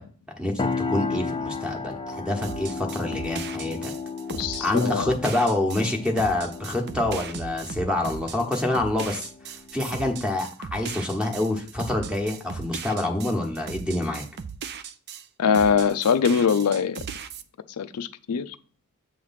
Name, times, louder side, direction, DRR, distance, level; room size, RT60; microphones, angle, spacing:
sound 1, 0.6-10.3, left 4 dB, 20° left, 0.5 m, -34 dB
voice 1, 0.9-3.9 4.6-9.3 9.7-14.2, left 1 dB, 5° right, 1.1 m, -26 dB
sound 2, 2.4-15.2 15.5-17.4, right 6 dB, 50° right, 0.5 m, -38 dB
voice 2, 4.3-5.1 15.4-17.0 17.8-18.6, left 6 dB, 80° left, 0.4 m, -22 dB
7.8 x 3.2 x 5.7 m
head